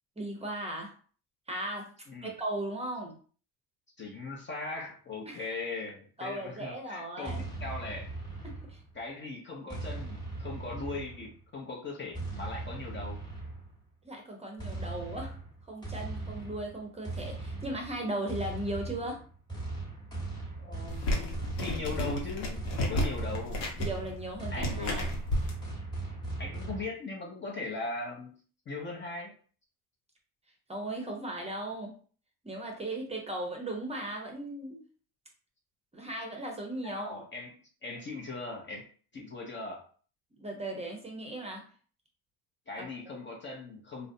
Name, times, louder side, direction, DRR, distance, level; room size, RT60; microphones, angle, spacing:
voice 1, 0.2-0.9 1.5-1.9 2.2-3.2 5.3-5.4 6.2-7.4 8.4-8.8 14.0-15.4 15.7-19.2 23.8-25.0 30.7-32.0 32.4-34.8 35.9-37.2 40.4-41.7 42.8-42.9, right 1 dB, 15° right, 1 dB, 0.6 m, -37 dB
voice 2, 4.0-8.1 8.9-13.2 20.6-23.6 24.5-25.1 26.4-28.4 28.7-29.3 36.8-38.8 39.1-39.8 42.7-44.1, left 3 dB, 25° left, -1 dB, 0.6 m, -39 dB
sound 1, 7.2-9.0 9.7-11.4 12.1-13.8 14.6-26.9, right 2 dB, 10° left, 1.0 m, -39 dB
sound 2, 20.9-25.5, left 1 dB, 65° left, 0.9 m, -32 dB
2.4 x 2.0 x 2.6 m, 0.43 s
supercardioid pair, 80°, 44 cm